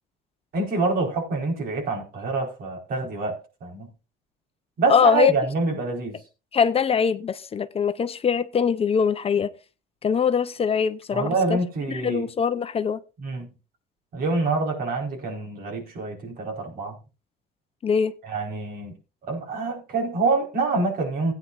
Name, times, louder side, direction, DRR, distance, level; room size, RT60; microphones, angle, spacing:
voice 1, 0.5-3.9 4.8-6.2 11.1-12.3 13.2-13.5 14.1-17.0 18.2-18.9 19.3-21.3, right 3 dB, 60° right, 4.6 m, -26 dB
voice 2, 4.9-5.3 6.5-9.5 10.0-11.6 11.9-13.0 17.8-18.1, left 6 dB, 35° left, 0.7 m, -22 dB
17.0 x 9.4 x 2.6 m
cardioid pair, 110°, 17 cm